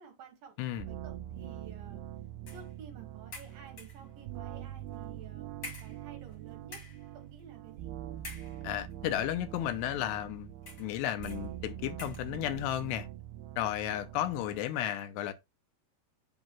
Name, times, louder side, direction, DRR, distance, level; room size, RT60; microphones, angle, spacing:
voice 1, 0.0-0.6 0.9-2.0 2.5-5.5 5.8-6.8 7.1-7.9 14.2-14.6, right 7 dB, 70° right, 2.5 m, -52 dB
sound 1, 0.8-14.6, right 11 dB, 85° right, 2.2 m, -44 dB
sound 2, 2.5-2.7 3.3-4.1 4.9-5.0 5.6-6.4 6.6-7.1 8.2-8.9 9.7-9.8 10.6-11.0 11.2-11.5 12.0-12.3, left 2 dB, 45° left, 1.4 m, -47 dB
voice 2, 8.6-10.5 10.8-13.1 13.6-15.3, left 12 dB, 80° left, 2.7 m, -33 dB
7.5 x 2.9 x 5.9 m
omnidirectional pair, 5.0 m